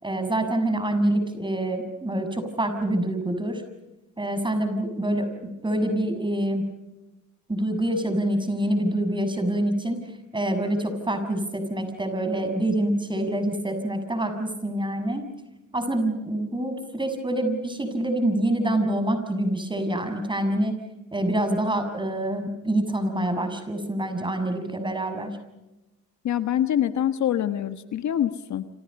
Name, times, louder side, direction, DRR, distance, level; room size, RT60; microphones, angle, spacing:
voice 1, 0.0-3.6 4.2-6.6 7.5-10.0 10.3-15.2 15.7-20.8 21.1-25.4, right 1 dB, 15° right, 7 dB, 6.8 m, -26 dB
voice 2, 26.2-28.7, left 10 dB, 70° left, 10 dB, 1.6 m, -25 dB
28.5 x 27.5 x 5.5 m, 0.98 s
cardioid pair, 90°, 30 cm